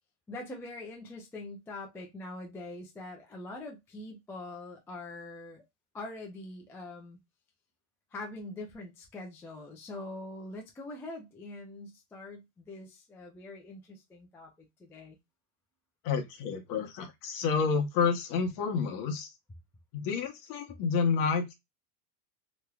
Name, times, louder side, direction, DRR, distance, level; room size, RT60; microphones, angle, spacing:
voice 1, 0.3-5.6 5.9-7.2 8.1-14.5 14.8-15.2, left 2 dB, 5° left, 0.3 m, -43 dB
voice 2, 16.0-19.3 19.9-21.5, left 5 dB, 45° left, 1.0 m, -29 dB
3.0 x 3.0 x 2.2 m
supercardioid pair, 125°, 45 cm